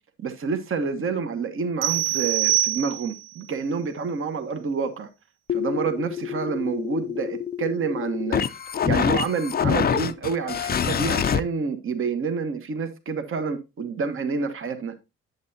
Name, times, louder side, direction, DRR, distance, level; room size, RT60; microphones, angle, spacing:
voice 1, 0.2-5.1 5.5-8.5 8.8-14.9, right 5 dB, 45° right, 1.1 m, -28 dB
sound 1, 1.8-3.3, right 15 dB, 60° right, 0.7 m, -24 dB
sound 2, 5.5-11.4, left 8 dB, 30° left, 0.4 m, -26 dB
7.9 x 7.7 x 2.7 m
cardioid pair, 90°, 30 cm